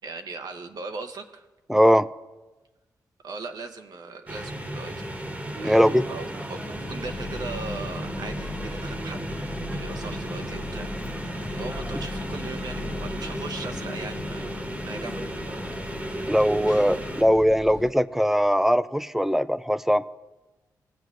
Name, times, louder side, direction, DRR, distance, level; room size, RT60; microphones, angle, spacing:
voice 1, 0.0-1.5 3.2-5.1 5.6-15.3 15.7-16.0, right 4 dB, 65° right, 5 dB, 0.7 m, -39 dB
voice 2, 1.7-2.1 5.6-6.0 16.3-20.0, equal, 5° right, 14 dB, 0.3 m, -20 dB
sound 1, 4.3-17.2, right 1 dB, 20° right, 1.1 m, -34 dB
sound 2, 6.7-17.9, left 3 dB, 55° left, 0.9 m, -38 dB
17.0 x 7.6 x 2.4 m, 1.1 s
cardioid pair, 60°, 7 cm